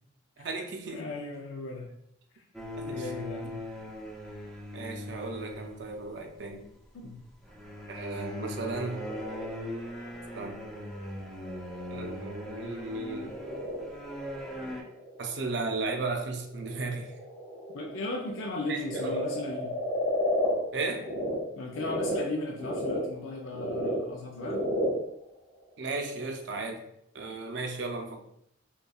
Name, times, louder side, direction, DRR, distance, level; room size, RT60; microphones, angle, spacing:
voice 1, 0.4-1.1 2.8-3.1 3.4-3.5 4.7-6.7 7.9-9.0 10.3-10.6 11.9-13.3 15.2-17.1 18.7-19.2 20.7-21.1 25.8-26.8 27.1-28.2, right 3 dB, 60° right, 3 dB, 0.5 m, -35 dB
voice 2, 0.9-1.9 2.9-3.5 6.9-7.2 17.7-19.7 21.5-24.6, left 2 dB, 80° left, 0 dB, 0.5 m, -36 dB
sound 1, 2.5-6.1 7.4-14.8, left 1 dB, ahead, 0.5 m, -40 dB
Frog, 8.7-21.4 21.7-26.4, left 1 dB, 40° left, 1.5 m, -35 dB
5.2 x 2.3 x 2.3 m, 0.75 s
head